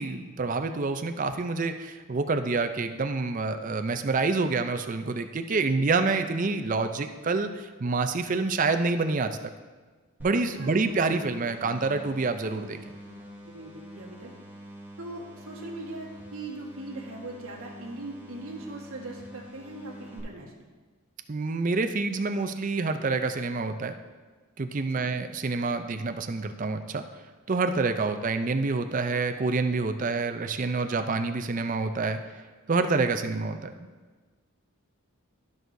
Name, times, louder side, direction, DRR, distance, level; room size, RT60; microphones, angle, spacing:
voice 1, 0.0-9.3 10.2-12.8 21.3-23.9 24.6-27.0 27.5-32.2 32.7-33.9, right 3 dB, 35° right, 7 dB, 0.4 m, -27 dB
sound 1, 10.2-20.2, right 1 dB, 10° right, 1.1 m, -46 dB
voice 2, 10.5-10.9 13.1-13.2 13.4-14.3 15.0-20.5 24.9-25.1 33.2-33.4, right 2 dB, 75° right, -2 dB, 1.5 m, -40 dB
12.5 x 6.2 x 2.6 m, 1.4 s
head